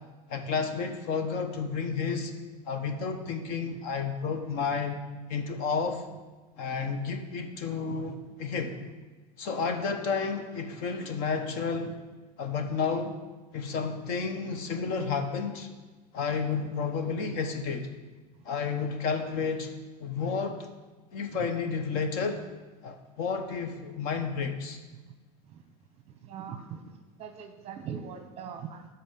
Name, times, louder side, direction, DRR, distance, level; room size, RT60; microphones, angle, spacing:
voice 1, 0.3-2.3 2.7-5.0 5.3-6.0 6.6-8.8 9.4-12.0 12.4-13.1 13.5-15.7 16.1-17.9 18.4-19.7 20.0-20.7 21.1-22.4 22.8-24.8, left 5 dB, 50° left, 7 dB, 1.2 m, -31 dB
voice 2, 26.2-26.8 27.2-28.9, right 7 dB, 30° right, 7 dB, 0.9 m, -40 dB
12.0 x 4.3 x 7.6 m, 1.3 s
supercardioid pair, 155°, 19 cm